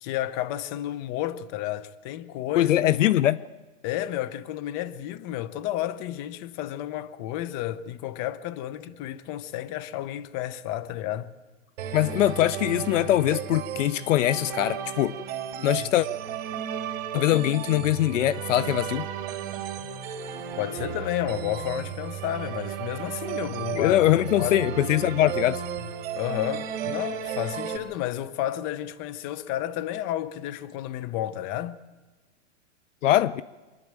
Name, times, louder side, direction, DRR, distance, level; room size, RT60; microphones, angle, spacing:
voice 1, 0.0-2.9 3.8-11.3 20.6-24.1 24.4-24.6 26.1-31.8, left 13 dB, 35° left, 0.9 m, -31 dB
voice 2, 2.6-3.4 11.9-15.1 15.6-16.1 17.1-19.1 23.7-25.6 33.0-33.4, left 13 dB, 75° left, 0.7 m, -22 dB
sound 1, 11.8-27.8, right 9 dB, 50° right, 3.1 m, -34 dB
26.0 x 11.5 x 9.0 m
hypercardioid pair, 145°, 38 cm